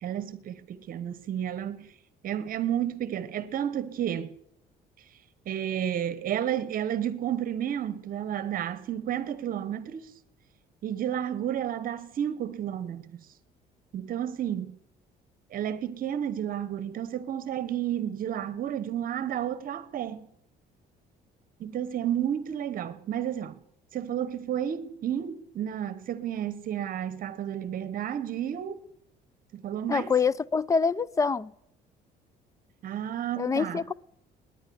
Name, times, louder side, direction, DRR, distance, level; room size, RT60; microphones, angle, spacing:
voice 1, 0.0-1.9 2.2-4.3 5.5-10.1 10.8-13.2 13.9-14.8 15.5-20.3 21.6-23.6 23.9-28.8 29.5-30.1 32.8-33.8, right 10 dB, 55° right, 1.1 m, -31 dB
voice 2, 29.9-31.5 33.4-33.9, left 5 dB, 20° left, 0.5 m, -25 dB
18.5 x 10.5 x 7.0 m
cardioid pair, 110°, 17 cm